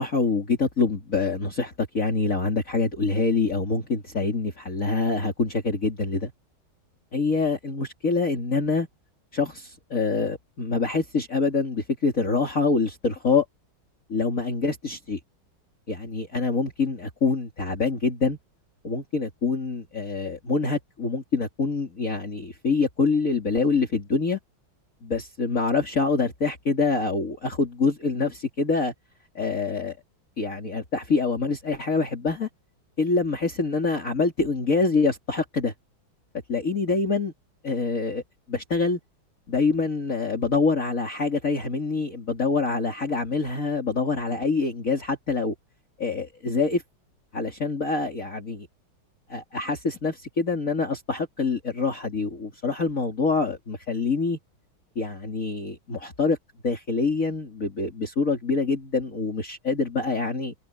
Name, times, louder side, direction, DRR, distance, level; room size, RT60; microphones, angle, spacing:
voice 1, 0.0-6.3 7.1-8.9 9.3-13.4 14.1-15.2 15.9-18.4 18.8-24.4 25.0-28.9 29.3-30.0 30.4-32.5 33.0-35.7 36.5-37.3 37.6-38.2 38.5-39.0 39.5-45.5 46.0-46.8 47.3-48.7 49.3-54.4 55.0-56.4 56.6-60.5, left 4 dB, 40° left, 3.1 m, -25 dB
omnidirectional pair, 2.3 m